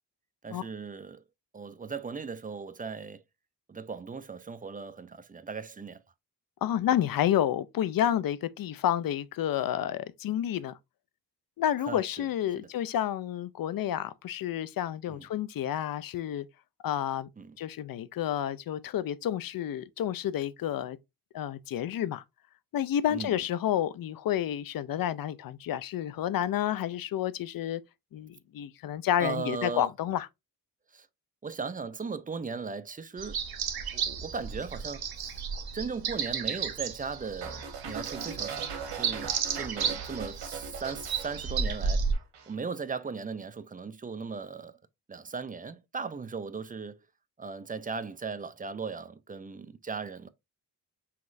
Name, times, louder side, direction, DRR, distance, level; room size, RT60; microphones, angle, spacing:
voice 1, 0.4-1.2 1.5-3.2 3.7-6.0 11.9-12.3 12.6-12.7 15.1-15.2 17.4-17.6 23.1-23.4 29.2-29.9 30.9-31.1 31.4-33.4 33.9-35.4 35.7-38.7 38.9-42.0 42.5-44.8 45.1-47.0 47.4-50.3, right 5 dB, 20° right, 0.4 m, -38 dB
voice 2, 6.6-10.7 11.6-16.5 16.8-17.3 17.6-21.0 21.3-22.2 22.7-27.8 28.1-30.3, left 11 dB, 60° left, 0.5 m, -30 dB
sound 1, 33.2-42.1, right 6 dB, 65° right, 1.0 m, -33 dB
sound 2, 37.4-41.9 42.1-42.5, right 6 dB, 85° right, 1.2 m, -40 dB
5.7 x 3.0 x 2.5 m
cardioid pair, 80°, 40 cm